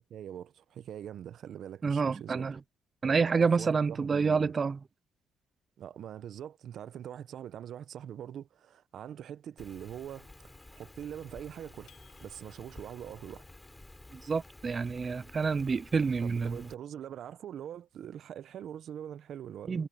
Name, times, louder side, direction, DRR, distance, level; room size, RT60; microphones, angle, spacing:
voice 1, 0.1-2.5 3.0-4.5 5.8-10.3 10.7-11.9 12.2-13.4 16.2-19.9, right 10 dB, 70° right, 0.9 m, -43 dB
voice 2, 1.8-2.6 3.0-4.8 14.1-16.7 19.7-19.9, right 5 dB, 35° right, 0.6 m, -28 dB
Rain, 9.6-16.7, left 2 dB, 15° left, 5.6 m, -52 dB
sound 1, 11.9-13.0, left 11 dB, 75° left, 6.5 m, -64 dB
cardioid pair, 90°, 0 cm